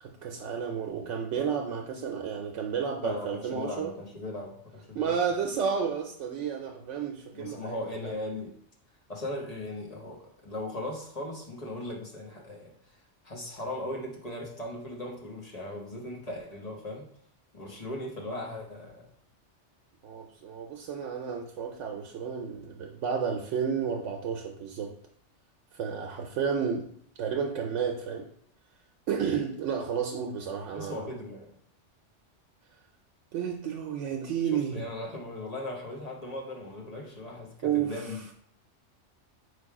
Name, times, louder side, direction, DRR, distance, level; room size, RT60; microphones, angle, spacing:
voice 1, 0.0-3.9 4.9-8.1 20.0-24.9 25.7-26.8 27.2-28.2 29.1-31.0 33.3-34.8 37.6-38.1, right 7 dB, 80° right, 2 dB, 0.9 m, -31 dB
voice 2, 3.0-5.2 7.3-8.5 9.1-12.7 13.2-17.1 17.5-19.1 30.7-31.5 34.5-38.2, left 1 dB, 35° left, -1 dB, 0.9 m, -38 dB
4.9 x 2.3 x 4.6 m, 0.66 s
omnidirectional pair, 1.2 m